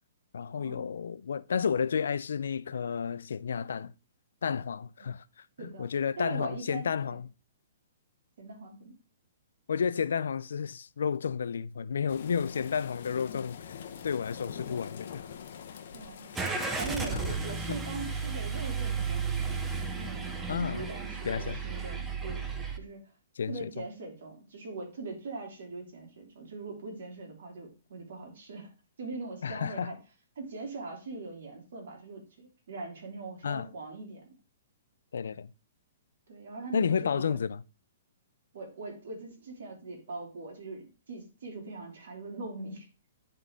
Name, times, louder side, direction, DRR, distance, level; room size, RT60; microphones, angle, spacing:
voice 1, 0.3-3.9 4.4-5.2 5.6-7.2 9.7-13.8 14.0-15.2 17.1-17.3 17.7-17.8 20.5-20.9 21.2-21.6 23.4-23.8 29.4-29.9 33.4-33.7 35.1-35.5 36.7-37.6, left 7 dB, 85° left, 0.4 m, -31 dB
voice 2, 5.6-5.9 6.2-7.2 8.4-9.0 15.9-16.3 16.8-19.5 19.9-23.0 23.5-28.7 29.0-30.0 30.4-34.2 36.3-37.4 38.5-42.9, right 3 dB, 65° right, 2.8 m, -41 dB
sound 1, 12.1-17.3, left 8 dB, 50° left, 0.9 m, -44 dB
Car / Engine starting, 16.3-22.8, right 5 dB, 10° right, 0.6 m, -34 dB
10.0 x 4.0 x 3.6 m
hypercardioid pair, 165°, 0 cm